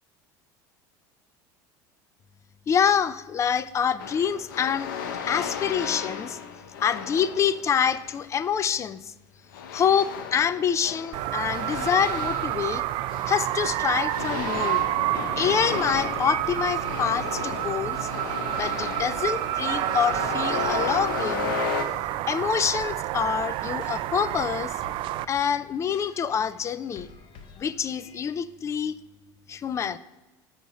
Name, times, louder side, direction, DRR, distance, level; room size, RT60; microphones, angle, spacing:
voice 1, 2.7-4.9 5.3-6.4 6.8-9.0 9.7-12.8 13.3-14.8 15.4-18.1 18.6-21.6 22.3-24.7 25.3-27.1 27.6-29.0 29.5-30.0, left 7 dB, 30° left, 16 dB, 0.4 m, -26 dB
sound 1, 4.0-8.2 9.5-13.7 14.1-21.8, left 6 dB, 90° left, 0.7 m, -34 dB
sound 2, 11.1-25.2, right 15 dB, 55° right, 0.3 m, -29 dB
sound 3, 11.7-28.4, left 5 dB, 55° left, 0.8 m, -50 dB
7.2 x 6.0 x 4.2 m, 1.1 s
supercardioid pair, 105°, 10 cm